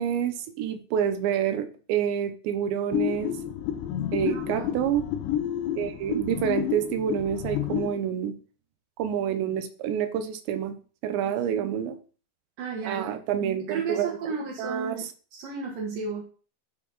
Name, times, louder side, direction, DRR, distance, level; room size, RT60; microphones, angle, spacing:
voice 1, 0.0-3.3 4.1-5.1 5.8-8.4 9.0-10.8 11.0-12.0 12.8-14.3 14.6-15.1, right 9 dB, 85° right, 9 dB, 3.3 m, -28 dB
sound 1, 2.9-8.0, left 11 dB, 85° left, 3.0 m, -30 dB
voice 2, 4.3-4.8 12.6-13.1 13.7-15.1 15.4-16.2, right 5 dB, 60° right, -4 dB, 2.8 m, -33 dB
12.0 x 4.8 x 4.1 m, 0.39 s
omnidirectional pair, 5.0 m